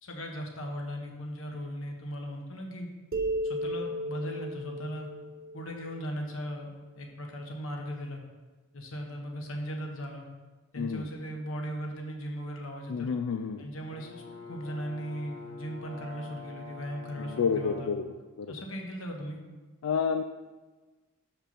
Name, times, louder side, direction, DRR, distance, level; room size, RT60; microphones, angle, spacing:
voice 1, 0.0-2.9 3.4-5.1 5.5-6.7 6.9-8.2 8.7-10.2 10.7-13.1 13.6-17.9 18.5-19.4, equal, 70° left, 2 dB, 1.4 m, -38 dB
sound 1, 3.1-6.6, equal, 45° right, 0.9 m, -35 dB
voice 2, 10.8-11.1 12.9-13.6 17.3-18.1 18.4-18.5 19.8-20.2, left 6 dB, 85° left, 7 dB, 0.4 m, -29 dB
Brass instrument, 13.9-18.0, left 3 dB, 50° left, 1.0 m, -45 dB
6.9 x 5.8 x 5.8 m, 1.2 s
head